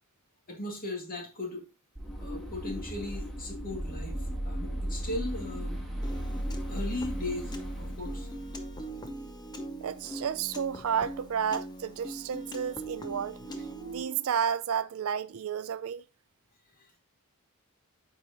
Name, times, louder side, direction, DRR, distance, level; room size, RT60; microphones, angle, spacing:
voice 1, 0.5-1.6 2.2-5.8 6.7-8.3 16.8-17.0, left 2 dB, 40° left, 2.1 m, -38 dB
sound 1, 2.0-9.4, equal, ahead, 1.5 m, -36 dB
Piano, 6.0-14.0, right 1 dB, 20° left, 0.7 m, -42 dB
voice 2, 9.8-16.0, right 8 dB, 65° right, 0.4 m, -32 dB
8.5 x 4.7 x 2.9 m
head